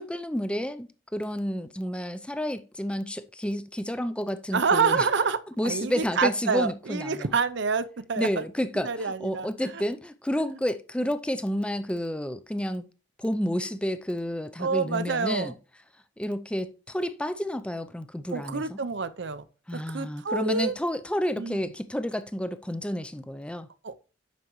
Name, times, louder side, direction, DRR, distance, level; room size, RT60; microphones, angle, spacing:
voice 1, 0.0-5.1 5.6-7.3 8.2-12.9 13.2-15.5 16.2-18.8 19.7-23.7, equal, 5° left, 0.4 m, -30 dB
voice 2, 4.5-8.4 8.8-9.5 9.7-9.8 14.6-15.5 18.3-19.4 19.7-20.8 21.4-21.6 23.8-23.9, right 5 dB, 55° right, 0.6 m, -27 dB
9.3 x 6.6 x 3.1 m
head